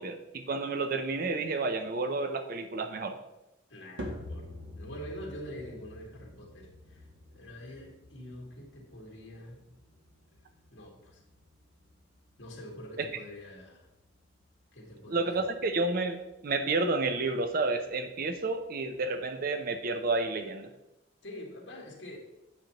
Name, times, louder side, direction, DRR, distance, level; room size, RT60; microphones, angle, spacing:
voice 1, 0.0-3.1 13.0-13.1 15.1-16.2 16.4-20.7, right 3 dB, 50° right, 7 dB, 0.5 m, -30 dB
voice 2, 3.7-9.6 10.7-11.2 12.4-13.9 14.7-15.5 21.2-22.2, equal, 70° left, -1 dB, 2.0 m, -45 dB
sound 1, 4.0-20.4, left 1 dB, 75° right, 1.2 m, -49 dB
8.9 x 6.6 x 2.9 m, 0.94 s
head